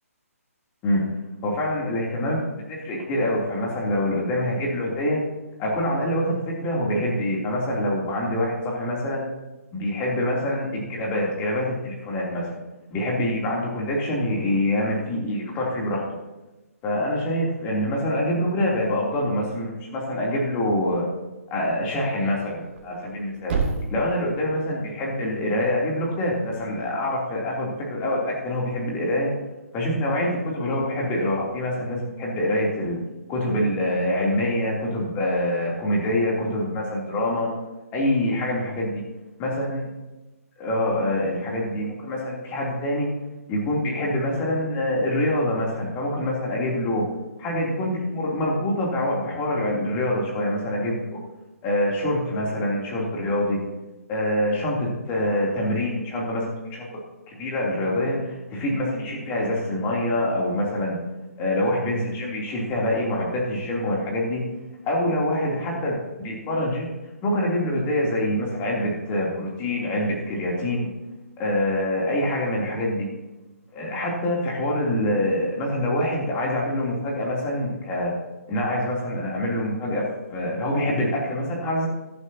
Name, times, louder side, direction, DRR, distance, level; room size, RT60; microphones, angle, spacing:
voice 1, 1.4-5.2 5.6-9.2 9.7-12.6 12.9-16.0 16.8-21.1 21.5-23.5 23.9-29.3 29.7-33.0 33.3-37.5 37.9-39.0 39.4-39.8 40.6-43.1 43.5-47.1 47.4-51.2 51.6-53.6 54.1-56.9 57.3-61.0 61.4-64.4 64.8-66.9 67.2-70.9 71.4-73.1 73.7-78.1 78.5-80.0 80.3-81.9, left 1 dB, 20° left, -3 dB, 3.1 m, -25 dB
Thump thud, 22.6-26.7, right 4 dB, 40° right, 2.4 m, -33 dB
15.0 x 11.5 x 2.9 m, 1.1 s
figure-of-eight pair, 145°, 8 cm